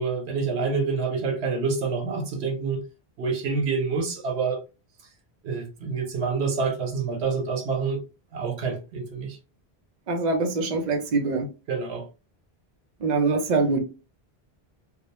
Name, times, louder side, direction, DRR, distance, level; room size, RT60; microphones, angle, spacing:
voice 1, 0.0-2.8 3.2-4.6 5.4-8.0 8.3-9.4 11.7-12.1, right 4 dB, 90° right, 1.0 m, -27 dB
voice 2, 10.1-11.5 13.0-13.8, right 3 dB, 50° right, 0.7 m, -24 dB
2.3 x 2.1 x 2.8 m
omnidirectional pair, 1.1 m